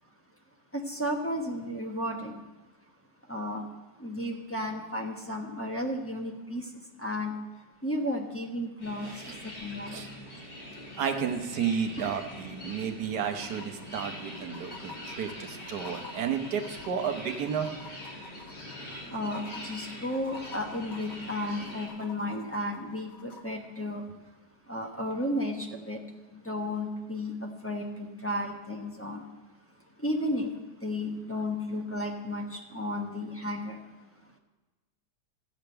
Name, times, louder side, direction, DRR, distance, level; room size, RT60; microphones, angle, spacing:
voice 1, 0.7-2.3 3.3-3.7 4.0-6.7 7.0-7.4 7.8-9.1 9.6-10.0 19.1-24.0 24.7-26.0 26.3-29.2 30.0-30.5 30.8-33.8, left 1 dB, 10° left, 0 dB, 0.9 m, -33 dB
sound 1, 8.8-21.9, left 1 dB, 75° left, 3.5 m, -43 dB
voice 2, 9.0-9.3 9.9-10.1 11.0-17.7, right 7 dB, 70° right, 5 dB, 1.5 m, -32 dB
sound 2, 12.1-12.2 12.4-12.5 13.1-23.4 25.1-25.2, left 4 dB, 50° left, 1.6 m, -49 dB
13.5 x 5.1 x 7.8 m, 1.2 s
omnidirectional pair, 1.9 m